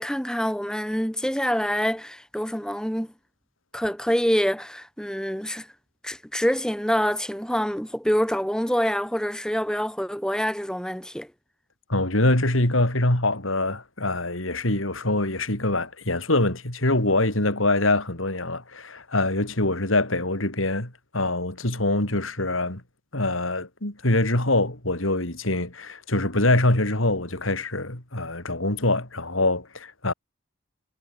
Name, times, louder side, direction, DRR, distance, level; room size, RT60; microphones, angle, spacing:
voice 1, 0.0-3.1 3.7-5.7 6.0-11.3, equal, 5° left, 2.9 m, -26 dB
voice 2, 11.9-22.8 23.1-30.1, left 2 dB, 85° left, 4.9 m, -24 dB
head